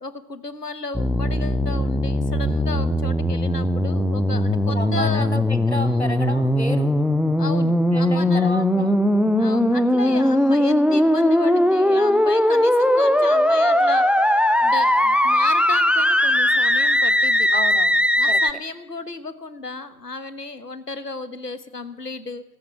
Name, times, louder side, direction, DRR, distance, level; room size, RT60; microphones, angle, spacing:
voice 1, 0.0-5.3 5.8-6.1 7.4-8.5 9.4-17.5 18.1-22.4, left 3 dB, 75° left, 13 dB, 1.2 m, -33 dB
sound 1, 0.9-18.5, left 1 dB, 5° right, 0.4 m, -19 dB
voice 2, 4.7-7.0 7.9-9.0 17.5-18.4, left 1 dB, 45° left, 12 dB, 0.8 m, -31 dB
15.0 x 13.5 x 4.8 m, 1.0 s
figure-of-eight pair, 175°, 48 cm